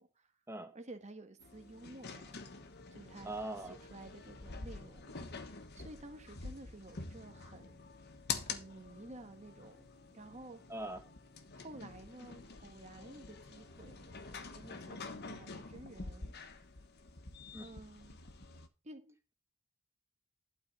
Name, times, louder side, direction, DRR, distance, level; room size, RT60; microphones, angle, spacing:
voice 1, 0.0-0.3 0.7-2.4 2.9-7.8 8.4-9.9 10.1-10.6 11.5-16.3 17.6-18.2 18.8-19.2, right 2 dB, 35° right, 1.5 m, -52 dB
sound 1, 1.4-18.7, left 4 dB, 50° left, 1.3 m, -47 dB
voice 2, 3.2-3.7 10.7-11.0 17.5-17.7, right 1 dB, 15° right, 1.6 m, -41 dB
11.5 x 4.5 x 6.9 m
head